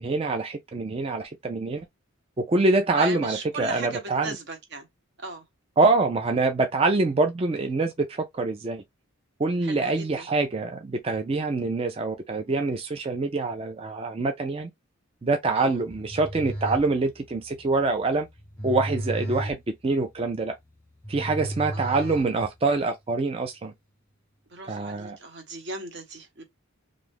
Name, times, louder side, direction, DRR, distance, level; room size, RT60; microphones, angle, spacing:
voice 1, 0.0-1.9 2.4-4.4 5.8-8.8 9.4-14.7 15.2-18.3 18.6-20.6 21.1-23.7 24.7-25.2, right 3 dB, 25° right, 0.3 m, -25 dB
voice 2, 2.9-4.9 5.2-5.5 9.6-10.3 15.5-15.8 21.7-22.3 24.5-26.4, right 3 dB, 50° right, 0.8 m, -37 dB
sound 1, 15.8-22.8, right 1 dB, 10° left, 0.9 m, -35 dB
2.6 x 2.3 x 3.4 m
head